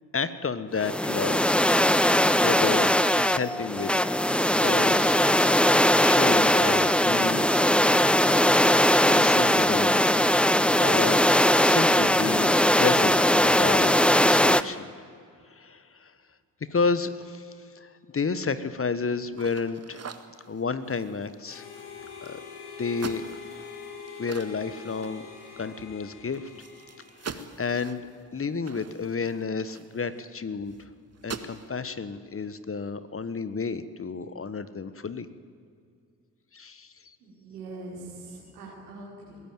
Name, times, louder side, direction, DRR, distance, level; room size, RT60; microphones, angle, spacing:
voice 1, 0.1-1.5 1.9-3.9 4.6-5.2 6.0-7.5 9.1-10.0 10.8-11.2 11.6-12.5 12.8-14.9 15.5-16.1 16.7-20.1 20.5-21.7 22.2-22.4 22.8-23.2 24.2-25.2 25.5-26.5 27.2-28.0 28.3-30.9 31.2-35.3 36.5-36.9, left 5 dB, 30° left, 13 dB, 1.3 m, -31 dB
sound 1, 0.8-14.6, left 1 dB, ahead, 0.7 m, -20 dB
sound 2, 19.3-22.5 22.9-25.6 25.9-26.0 26.3-30.2 30.7-30.8 31.1-31.7, right 5 dB, 35° right, 1.8 m, -43 dB
Harmonica, 21.4-27.8, left 6 dB, 80° left, 3.2 m, -44 dB
voice 2, 37.2-39.4, right 2 dB, 90° right, -2 dB, 5.0 m, -42 dB
20.5 x 17.0 x 9.3 m, 2.3 s
hypercardioid pair, 50°, 45 cm